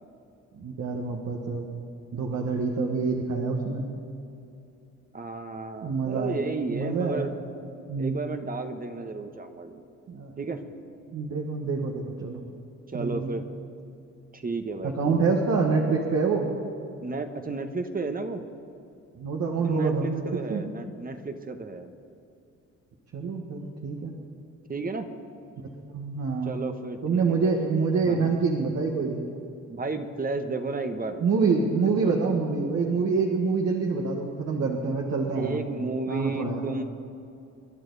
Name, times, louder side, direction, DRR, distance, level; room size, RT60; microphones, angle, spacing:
voice 1, 0.5-1.7 2.1-3.9 5.8-6.4 6.7-7.3 7.9-8.2 10.1-10.3 11.1-12.4 12.9-13.4 14.8-16.5 19.1-20.2 20.5-20.7 23.1-24.2 25.9-26.5 27.0-29.3 31.2-35.6 36.1-36.6, right 4 dB, 60° right, -1 dB, 1.7 m, -26 dB
voice 2, 5.1-7.3 8.0-9.8 10.4-10.6 12.9-13.4 14.3-15.2 17.0-18.4 19.6-21.9 24.7-25.1 26.4-27.5 28.0-28.3 29.7-32.1 35.3-36.8, right 3 dB, 30° right, 7 dB, 1.2 m, -33 dB
27.0 x 10.5 x 4.1 m, 2.6 s
cardioid pair, 90°, 30 cm